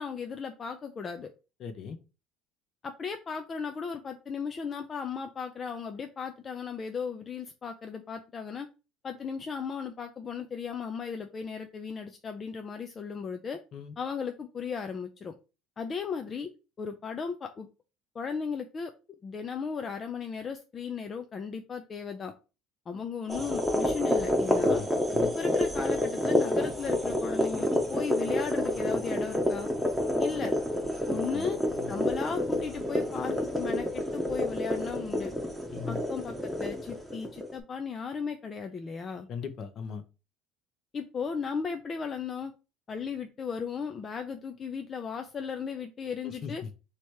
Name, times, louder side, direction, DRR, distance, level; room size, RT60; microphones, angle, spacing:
voice 1, 0.0-1.3 2.8-8.7 9.0-13.6 14.0-15.3 15.8-16.5 16.8-17.7 18.1-18.9 19.2-22.3 22.9-24.8 25.2-29.7 30.2-30.5 31.1-31.6 31.9-35.3 35.9-39.3 40.9-42.5 42.9-46.6, left 6 dB, 30° left, 6 dB, 0.4 m, -36 dB
voice 2, 1.6-2.0 13.7-13.9 24.6-24.9 25.1-25.3 31.3-31.4 31.8-31.9 35.7-36.0 39.3-40.0 46.2-46.5, left 6 dB, 45° left, 9 dB, 0.8 m, -38 dB
sound 1, 23.3-37.5, left 1 dB, ahead, 0.9 m, -29 dB
3.2 x 2.9 x 4.6 m, 0.31 s
cardioid pair, 120°, 0 cm